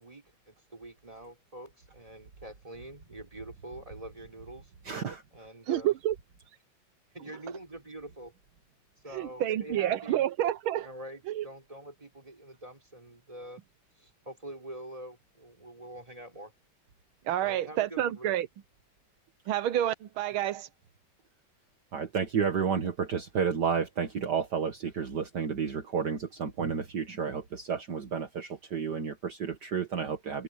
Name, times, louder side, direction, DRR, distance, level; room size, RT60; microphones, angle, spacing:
voice 1, 0.0-4.7 5.3-5.9 7.1-8.3 9.0-10.2 10.8-13.6 14.0-16.5 17.4-18.4, right 1 dB, 15° right, 4.7 m, -45 dB
voice 2, 4.9-5.2 21.9-30.4, right 6 dB, 55° right, 2.0 m, -31 dB
voice 3, 5.7-6.1 9.1-10.9 11.3-11.4 17.3-18.5 19.5-20.7, right 12 dB, 85° right, 1.6 m, -29 dB
omnidirectional pair, 2.2 m